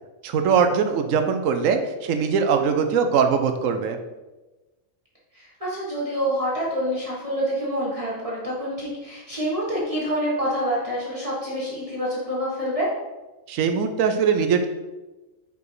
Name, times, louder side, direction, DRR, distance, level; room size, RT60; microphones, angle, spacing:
voice 1, 0.2-4.0 13.5-14.7, right 6 dB, 75° right, 7 dB, 1.1 m, -21 dB
voice 2, 5.3-12.9, equal, 25° right, -8 dB, 1.7 m, -27 dB
5.3 x 4.8 x 4.8 m, 1.1 s
omnidirectional pair, 1.4 m